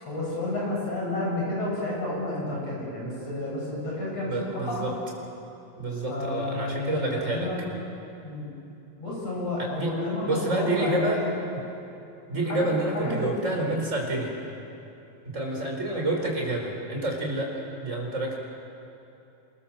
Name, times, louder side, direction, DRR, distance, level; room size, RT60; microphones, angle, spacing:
voice 1, 0.0-4.9 6.1-7.6 8.2-8.5 9.0-11.3 12.5-12.6 12.9-13.6, left 2 dB, 55° left, -4 dB, 8.7 m, -31 dB
voice 2, 4.2-4.9 5.8-7.5 9.6-10.0 10.2-11.2 11.5-11.6 12.3-14.3 15.3-18.4, right 2 dB, 25° right, 0 dB, 5.3 m, -28 dB
28.0 x 25.5 x 7.6 m, 2.7 s
omnidirectional pair, 3.4 m